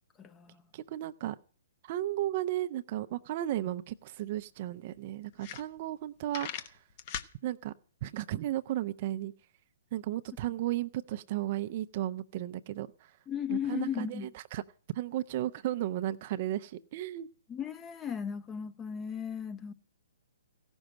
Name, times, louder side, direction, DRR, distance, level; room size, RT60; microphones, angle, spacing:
voice 1, 0.2-0.6 13.3-14.3 17.5-19.7, left 8 dB, 20° left, 0.9 m, -36 dB
voice 2, 0.7-1.3 1.8-6.7 7.4-7.7 8.0-9.3 9.9-12.9 13.5-14.6 14.9-17.3, right 13 dB, 45° right, 0.7 m, -34 dB
sound 1, 3.9-4.0 4.3-4.4 4.9-5.0 5.3-6.0 6.3-7.3, left 9 dB, 45° left, 1.1 m, -39 dB
16.0 x 6.3 x 8.9 m
hypercardioid pair, 130°, 0 cm